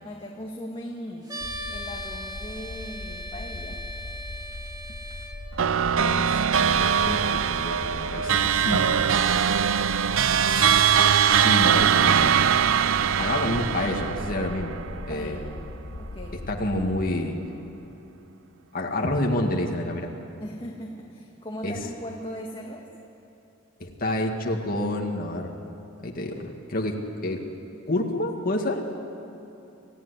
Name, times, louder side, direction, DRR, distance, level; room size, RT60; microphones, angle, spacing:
voice 1, 0.0-1.4 1.7-3.8 15.1-15.6 16.0-16.8 20.4-22.9, equal, 25° left, -1 dB, 1.8 m, -39 dB
sound 1, 1.3-5.3, equal, 20° right, 2.7 m, -38 dB
sound 2, 1.4-17.1, left 1 dB, 70° left, 1.0 m, -39 dB
sound 3, 5.6-15.2, right 8 dB, 80° right, 0.6 m, -22 dB
voice 2, 5.8-8.9 10.4-12.5 13.2-14.8 15.1-15.4 16.5-17.4 18.7-20.1 21.6-21.8 23.8-25.5 26.0-27.5 27.9-28.9, left 1 dB, 50° left, 1 dB, 2.0 m, -29 dB
27.0 x 15.5 x 9.9 m, 2.9 s
head